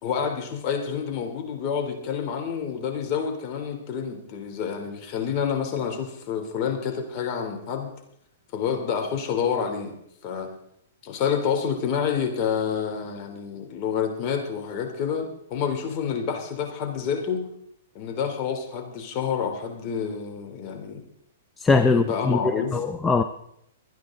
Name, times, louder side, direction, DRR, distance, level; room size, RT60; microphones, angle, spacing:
voice 1, 0.0-7.9 8.5-9.9 10.2-10.5 11.0-17.5 18.0-21.0 21.9-22.8, left 7 dB, 40° left, 4 dB, 3.4 m, -28 dB
voice 2, 21.6-23.2, left 4 dB, 10° left, 9 dB, 0.6 m, -21 dB
25.0 x 9.4 x 3.9 m, 0.72 s
hypercardioid pair, 135°, 0 cm